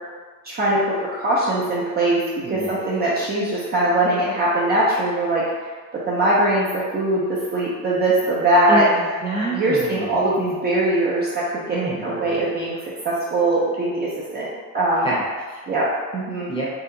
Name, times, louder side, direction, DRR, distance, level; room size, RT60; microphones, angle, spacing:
voice 1, 0.4-5.4 5.9-8.9 9.5-12.8 13.0-15.1 15.7-16.5, right 1 dB, 30° right, -7 dB, 0.5 m, -21 dB
voice 2, 2.4-2.7 8.7-10.4 11.7-12.4 15.0-15.6 16.5-16.7, right 2 dB, 15° left, -7 dB, 0.7 m, -28 dB
2.7 x 2.1 x 3.6 m, 1.5 s
cardioid pair, 155°, 35 cm